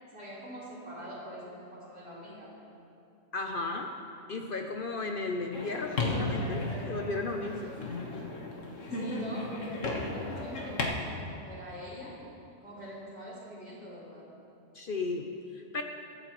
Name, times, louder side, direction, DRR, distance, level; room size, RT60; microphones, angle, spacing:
voice 1, 0.0-2.5 8.9-12.2 12.6-14.3, equal, 55° right, -7 dB, 3.4 m, -44 dB
voice 2, 3.3-3.9 4.3-7.7 14.7-15.8, left 3 dB, 55° left, 3 dB, 0.7 m, -35 dB
sound 1, 5.5-10.8, left 2 dB, 80° left, 1.6 m, -34 dB
22.0 x 8.9 x 3.0 m, 2.7 s
omnidirectional pair, 1.3 m